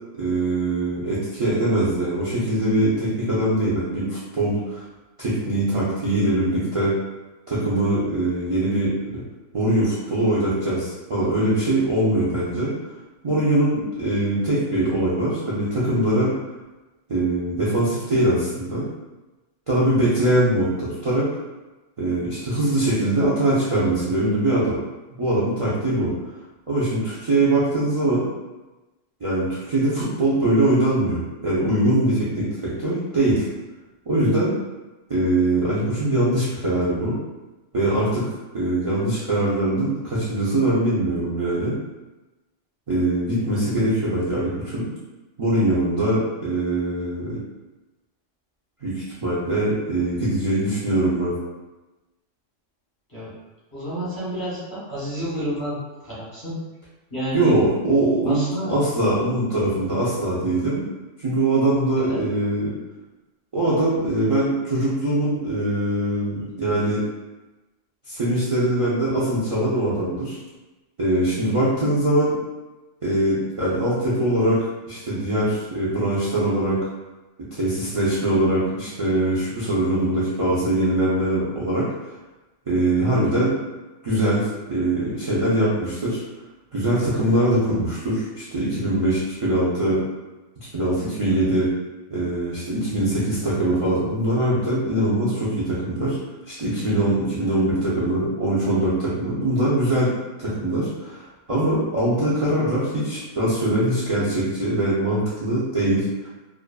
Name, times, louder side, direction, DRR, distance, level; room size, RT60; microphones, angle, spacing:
voice 1, 0.2-4.8 5.2-6.9 7.5-9.2 9.5-12.7 13.2-16.4 17.1-18.9 19.7-21.3 22.0-24.8 25.2-26.1 26.7-28.2 29.2-33.5 34.1-34.5 35.1-37.1 37.7-38.2 38.5-41.8 42.9-44.9 45.4-47.4 48.8-51.3 57.3-60.8 61.2-62.8 63.5-67.0 68.1-70.4 71.0-72.4 73.0-76.8 77.6-81.9 82.7-83.5 84.0-86.2 86.7-90.0 90.7-91.7 92.1-96.2 96.5-106.1, right 1 dB, 55° right, -9 dB, 0.3 m, -22 dB
voice 2, 53.7-55.8 56.0-56.6 57.1-57.7 58.3-58.7 62.0-62.2, equal, 20° left, -9 dB, 0.8 m, -29 dB
2.5 x 2.4 x 2.2 m, 1.1 s
omnidirectional pair, 1.3 m